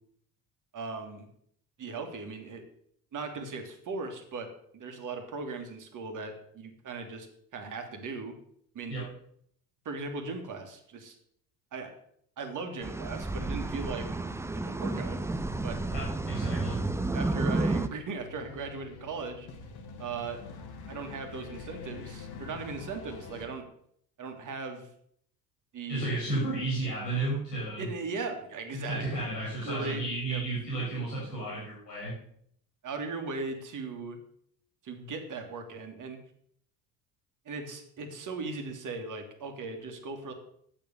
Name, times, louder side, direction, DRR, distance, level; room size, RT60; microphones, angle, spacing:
voice 1, 0.7-1.3 1.8-2.6 3.1-4.5 4.7-7.3 7.5-8.4 8.7-9.0 9.9-11.1 11.7-11.9 12.4-14.1 14.5-15.2 15.6-15.8 17.1-19.5 20.0-20.4 20.9-23.7 24.2-24.9 25.7-26.1 27.8-29.2 29.6-30.4 32.8-34.2 34.8-36.2 37.5-40.3, right 4 dB, 40° right, 5 dB, 2.1 m, -38 dB
sound 1, 12.8-17.9, right 2 dB, 5° right, 0.6 m, -31 dB
voice 2, 15.9-16.8 25.9-27.9 28.8-32.1, right 2 dB, 85° left, -5 dB, 4.0 m, -33 dB
sound 2, 18.2-23.5, left 4 dB, 50° left, 1.7 m, -45 dB
8.6 x 7.1 x 6.6 m, 0.67 s
figure-of-eight pair, 60°, 49 cm